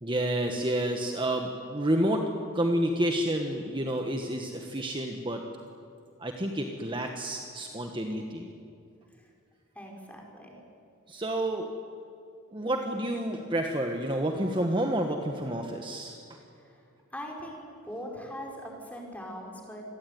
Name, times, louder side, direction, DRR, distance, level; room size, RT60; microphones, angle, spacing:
voice 1, 0.0-2.3 2.5-5.4 6.2-8.5 11.1-11.7 12.5-16.4, right 1 dB, 25° right, 3 dB, 1.5 m, -29 dB
voice 2, 9.8-10.6 16.6-16.8 17.1-19.8, equal, 5° left, 0 dB, 5.3 m, -41 dB
27.5 x 21.5 x 9.5 m, 2.6 s
head